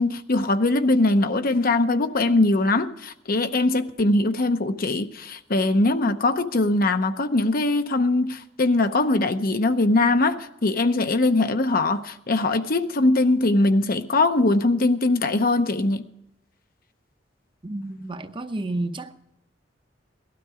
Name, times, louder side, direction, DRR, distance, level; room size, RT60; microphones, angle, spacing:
voice 1, 0.0-16.1, left 2 dB, 50° left, 0.8 m, -21 dB
voice 2, 17.6-19.1, right 2 dB, 25° right, 0.8 m, -31 dB
18.5 x 12.5 x 4.9 m
head